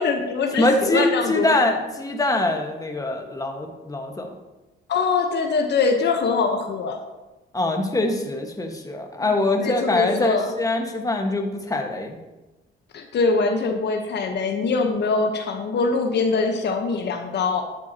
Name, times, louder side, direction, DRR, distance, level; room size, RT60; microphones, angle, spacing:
voice 1, 0.0-1.5 4.9-7.0 9.2-9.3 9.6-10.5 12.9-17.6, left 4 dB, 60° left, 4 dB, 1.0 m, -23 dB
voice 2, 0.5-4.3 7.5-12.2, left 2 dB, 15° left, 2 dB, 1.5 m, -23 dB
11.5 x 8.3 x 2.9 m, 1.1 s
cardioid pair, 90°, 20 cm